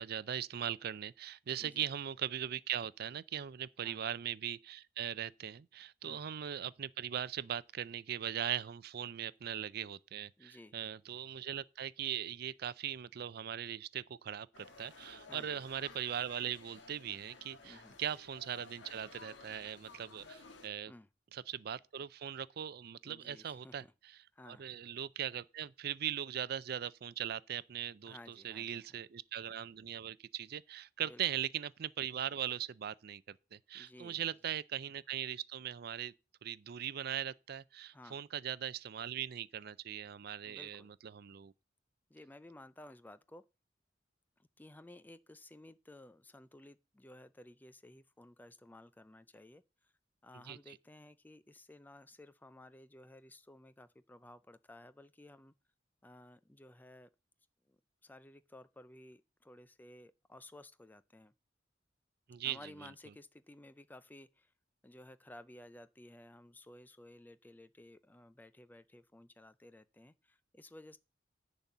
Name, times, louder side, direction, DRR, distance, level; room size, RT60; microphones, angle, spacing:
voice 1, 0.0-20.9 21.3-24.2 24.5-36.1 36.4-41.5 50.5-50.8 62.3-62.7, right 10 dB, 55° right, 0.4 m, -40 dB
voice 2, 10.4-10.7 15.3-15.6 17.6-18.0 20.9-21.1 23.0-23.9 24.3-24.7 28.1-29.0 31.0-31.2 33.7-34.3 37.9-38.2 40.5-40.9 42.1-43.5 44.6-49.9 50.2-55.5 56.0-57.1 57.7-61.3 62.4-64.5 64.8-71.0, left 1 dB, 10° left, 0.4 m, -56 dB
sound 1, 14.5-20.7, left 3 dB, 85° left, 1.4 m, -55 dB
10.5 x 4.1 x 7.1 m
head